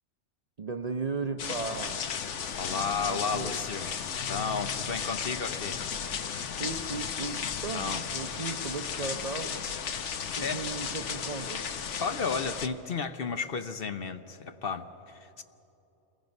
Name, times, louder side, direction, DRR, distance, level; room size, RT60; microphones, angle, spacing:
voice 1, 0.6-2.0 3.0-3.7 4.9-5.0 6.6-9.7 10.3-11.7, right 4 dB, 40° right, 7 dB, 0.7 m, -36 dB
sound 1, 1.4-12.7, left 7 dB, 75° left, 1.2 m, -35 dB
voice 2, 2.5-3.9 4.2-5.8 7.7-8.0 10.4-10.6 12.0-15.4, left 5 dB, 55° left, 9 dB, 0.9 m, -33 dB
Guitar, 4.0-5.7, left 6 dB, 10° left, 4.9 m, -46 dB
27.5 x 21.0 x 5.3 m, 3.0 s
omnidirectional pair, 1.2 m